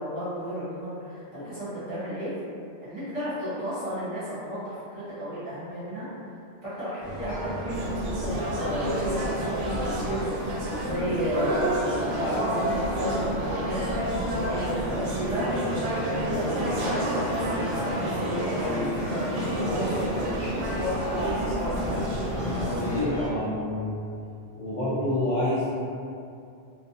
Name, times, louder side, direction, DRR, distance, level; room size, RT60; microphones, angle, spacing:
voice 1, 0.0-2.3 2.8-6.1 6.6-22.0, equal, 35° right, -12 dB, 0.8 m, -33 dB
sound 1, 7.0-23.3, equal, 5° left, 0.8 m, -36 dB
sound 2, 7.7-23.0, equal, 85° right, 0.9 m, -29 dB
voice 2, 22.8-24.1 24.6-25.7, left 1 dB, 65° left, -10 dB, 0.3 m, -28 dB
2.4 x 2.2 x 2.6 m, 2.5 s
omnidirectional pair, 1.2 m